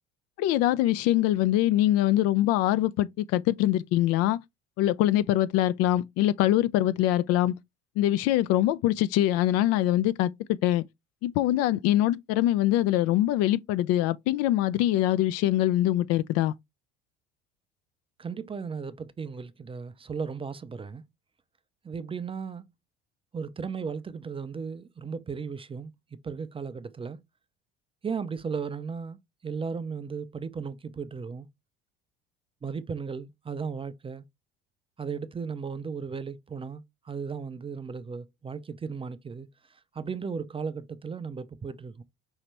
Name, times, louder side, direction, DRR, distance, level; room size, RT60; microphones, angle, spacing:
voice 1, 0.4-4.4 4.8-7.5 8.0-10.8 11.2-16.5, left 14 dB, 50° left, 0.4 m, -23 dB
voice 2, 18.2-21.0 21.8-22.7 23.3-25.9 26.2-27.2 28.0-31.5 32.6-34.2 35.0-39.5 39.9-42.0, right 5 dB, 15° right, 0.5 m, -35 dB
5.6 x 2.9 x 3.3 m
figure-of-eight pair, 65°, 31 cm